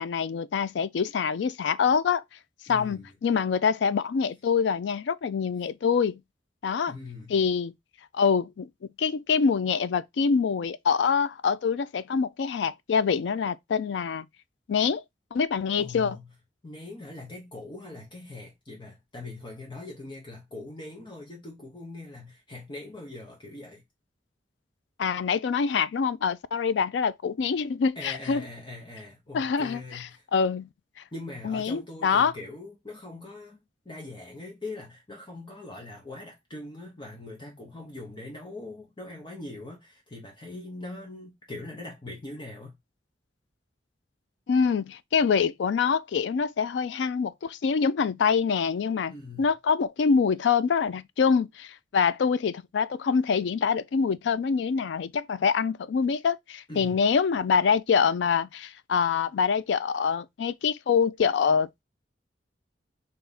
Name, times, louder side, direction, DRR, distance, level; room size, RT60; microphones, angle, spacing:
voice 1, 0.0-2.2 2.7-6.2 6.6-6.9 7.3-7.7 8.1-8.7 9.0-14.3 14.7-15.0 15.3-16.2 25.0-28.4 29.3-30.7 31.4-32.3 44.5-49.1 49.4-61.7, left 6 dB, 80° left, 0.4 m, -25 dB
voice 2, 2.7-3.1 6.9-7.4 15.8-16.3 16.6-23.8 28.0-30.2 31.1-42.7 49.1-49.5 56.7-57.0, left 2 dB, 25° left, 0.9 m, -41 dB
3.5 x 2.8 x 3.9 m
head